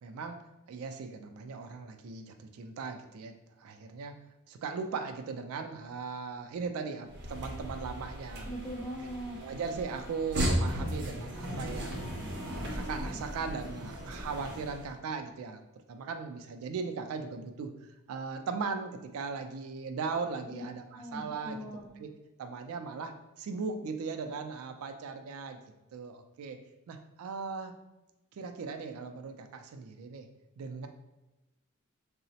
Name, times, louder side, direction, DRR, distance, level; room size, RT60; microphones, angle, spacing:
voice 1, 0.0-0.4 0.7-4.2 4.5-8.5 9.3-12.1 12.5-15.6 15.9-17.7 18.1-21.6 22.0-22.1 22.4-25.6 25.9-26.6 26.9-27.7 28.3-30.3 30.6-30.9, right 5 dB, 70° right, 6 dB, 0.3 m, -38 dB
sound 1, 7.1-14.9, equal, 50° right, 0.7 m, -36 dB
voice 2, 8.4-9.4 20.5-20.6 20.9-21.9, equal, 15° left, -3 dB, 0.6 m, -40 dB
3.8 x 2.0 x 2.7 m, 0.98 s
head